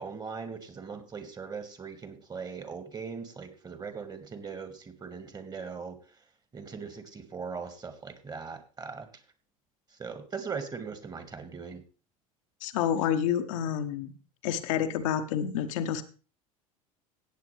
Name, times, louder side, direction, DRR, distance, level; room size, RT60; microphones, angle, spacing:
voice 1, 0.0-6.0 6.5-9.1 10.0-11.8, right 5 dB, 20° right, 10 dB, 1.8 m, -40 dB
voice 2, 12.6-14.1 14.4-16.0, left 9 dB, 60° left, 7 dB, 1.1 m, -29 dB
17.0 x 8.0 x 3.3 m, 0.35 s
figure-of-eight pair, 70°, 18 cm